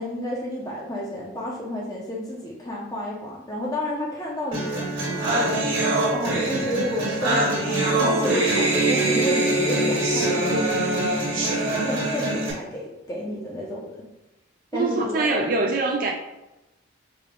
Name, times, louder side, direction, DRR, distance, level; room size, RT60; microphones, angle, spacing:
voice 1, 0.0-4.9 5.3-5.8 6.1-11.1 11.3-13.9 14.7-15.4, left 1 dB, 20° left, -3 dB, 0.6 m, -31 dB
sound 1, 4.5-12.5, right 2 dB, 75° right, 1.4 m, -23 dB
voice 2, 14.7-16.1, right 3 dB, 45° right, 1 dB, 0.3 m, -23 dB
5.0 x 2.3 x 3.5 m, 0.96 s
head